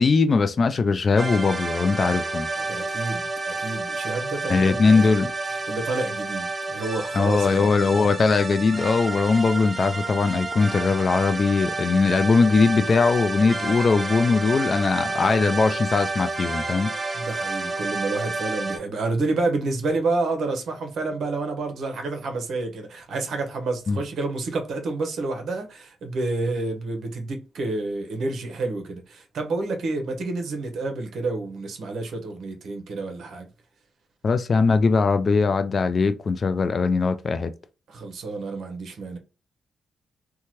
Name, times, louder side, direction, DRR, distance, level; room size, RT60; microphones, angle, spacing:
voice 1, 0.0-2.5 4.5-5.3 7.1-17.2 23.9-24.0 34.2-37.5, left 4 dB, 40° left, 0.3 m, -20 dB
sound 1, 1.2-18.8, right 3 dB, 20° right, 0.5 m, -30 dB
voice 2, 2.6-5.2 5.5-7.7 16.7-16.8 17.1-33.5 37.9-39.2, right 3 dB, 70° right, 0.8 m, -29 dB
2.8 x 2.2 x 3.0 m
cardioid pair, 95°, 0 cm